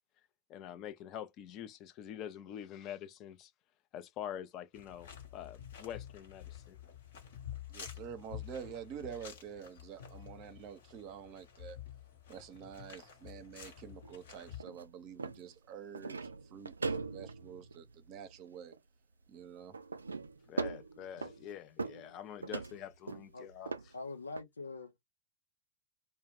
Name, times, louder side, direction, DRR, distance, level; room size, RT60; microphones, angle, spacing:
voice 1, 0.5-3.5 3.9-6.8 20.5-23.9, left 10 dB, 40° left, 0.5 m, -46 dB
sound 1, 4.7-14.6, left 10 dB, 65° left, 1.0 m, -49 dB
voice 2, 7.7-11.8 12.3-18.7 19.3-19.7, right 8 dB, 45° right, 0.6 m, -48 dB
sound 2, 14.0-14.2 14.6-14.9 15.2-15.5 15.9-18.3 18.7-18.8 19.7-21.5 21.8-22.1 22.4-23.3 23.7-23.9 24.4-24.5, right 4 dB, 80° right, 0.3 m, -40 dB
voice 3, 23.9-25.0, left 3 dB, 80° left, 0.7 m, -43 dB
2.3 x 2.2 x 3.3 m
figure-of-eight pair, 90°, 0 cm